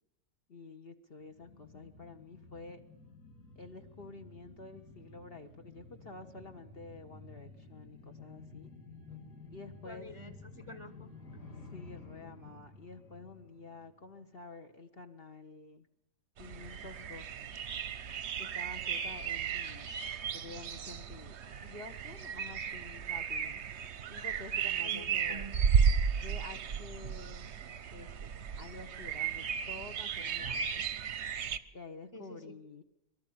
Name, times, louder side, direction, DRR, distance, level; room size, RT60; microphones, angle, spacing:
voice 1, 0.5-2.8 3.6-8.7 9.5-10.1 11.7-15.9 16.4-17.5 18.4-19.9 20.3-23.6 24.1-25.5 25.7-25.8 26.2-27.5 27.9-30.8 31.7-32.8, left 3 dB, 40° left, 6 dB, 1.1 m, -49 dB
sound 1, 1.2-14.4 14.7-14.8, left 3 dB, 90° left, 3.1 m, -52 dB
voice 2, 9.8-11.1 24.8-25.9 30.6-30.9 32.1-32.6, right 1 dB, 25° right, 8 dB, 0.9 m, -49 dB
sound 2, 16.4-31.6, right 7 dB, 50° right, 1.0 m, -34 dB
23.0 x 13.5 x 8.5 m, 0.89 s
omnidirectional pair, 1.7 m